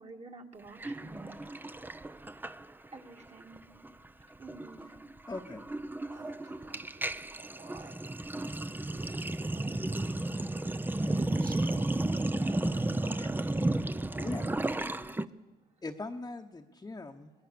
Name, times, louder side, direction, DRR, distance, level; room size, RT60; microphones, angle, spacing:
voice 1, 0.0-1.8 2.9-3.6 4.4-4.8 9.4-9.6, right 3 dB, 35° right, 2.1 m, -50 dB
Sink (filling or washing), 0.8-3.0 3.3-3.6 3.8-15.3, right 2 dB, 10° right, 0.6 m, -33 dB
voice 2, 5.3-5.7 13.2-13.3 14.2-14.5 15.8-17.3, left 2 dB, 20° left, 1.1 m, -40 dB
voice 3, 6.0-7.9 8.3-9.1 9.4-10.7 11.1-13.7, right 5 dB, 60° right, 3.5 m, -55 dB
24.5 x 18.5 x 6.9 m
supercardioid pair, 70°, 18 cm